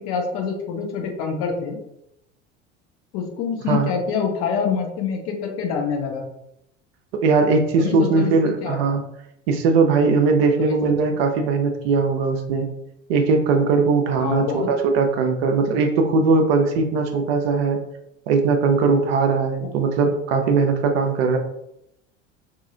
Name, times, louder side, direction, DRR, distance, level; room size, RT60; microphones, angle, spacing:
voice 1, 0.0-1.8 3.1-6.3 7.8-8.3 8.6-8.8 10.6-11.2 14.2-14.7, left 6 dB, 40° left, 2 dB, 0.7 m, -26 dB
voice 2, 7.2-9.0 9.5-12.7 13.1-17.8 18.3-21.4, right 4 dB, 55° right, 5 dB, 0.5 m, -19 dB
2.7 x 2.3 x 2.7 m, 0.82 s
figure-of-eight pair, 70°, 38 cm